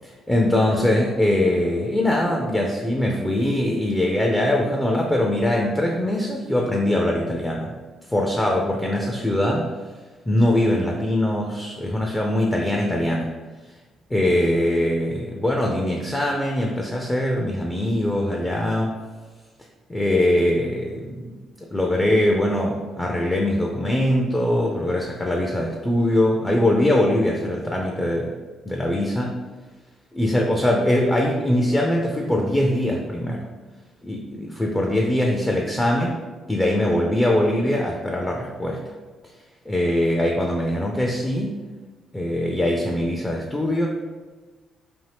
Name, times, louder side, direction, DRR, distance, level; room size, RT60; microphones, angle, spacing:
voice 1, 0.0-7.7 8.1-9.7 10.3-13.3 14.1-18.9 19.9-21.4 21.7-28.3 28.7-29.4 30.1-33.5 34.0-36.2 36.5-38.8 39.7-41.6 42.1-43.9, left 1 dB, 15° left, -1 dB, 0.4 m, -22 dB
2.7 x 2.4 x 3.3 m, 1.3 s
cardioid pair, 90°, 0 cm